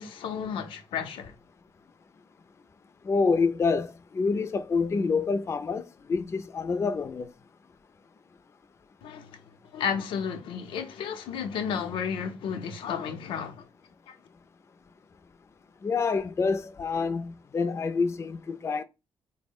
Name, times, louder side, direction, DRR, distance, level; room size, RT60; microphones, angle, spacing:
voice 1, 0.0-1.3 9.0-9.4 9.7-13.6 14.1-14.2, left 7 dB, 80° left, 0.5 m, -32 dB
voice 2, 3.0-7.3 15.8-18.8, left 4 dB, 35° left, 0.3 m, -27 dB
4.0 x 2.1 x 3.5 m
cardioid pair, 70°, 9 cm